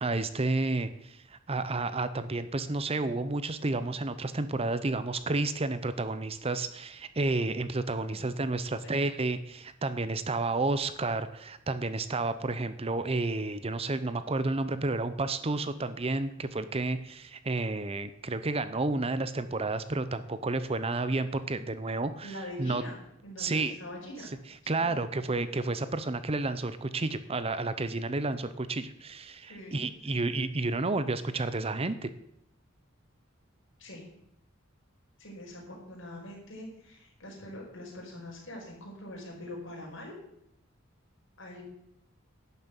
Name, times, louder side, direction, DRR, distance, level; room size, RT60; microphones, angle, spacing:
voice 1, 0.0-22.8 23.4-23.8 24.7-32.1, right 2 dB, 30° right, 12 dB, 0.7 m, -31 dB
voice 2, 22.2-23.0 23.2-24.3 24.6-25.0 29.5-30.4 33.8-34.1 35.2-40.1 41.4-41.6, left 1 dB, 65° left, -1 dB, 5.2 m, -44 dB
11.5 x 7.4 x 8.2 m, 0.78 s
head